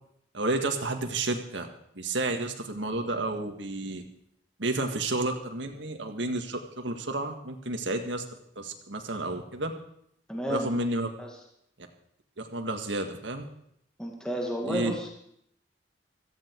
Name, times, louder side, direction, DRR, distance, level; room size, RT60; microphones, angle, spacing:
voice 1, 0.3-1.7 1.9-4.0 4.6-8.2 8.6-9.7 10.5-11.1 12.4-13.5 14.7-14.9, right 2 dB, 70° right, 4 dB, 1.9 m, -31 dB
voice 2, 10.3-10.7 11.2-11.4 14.0-15.1, equal, 5° left, -1 dB, 2.0 m, -31 dB
16.5 x 14.5 x 4.7 m, 0.72 s
head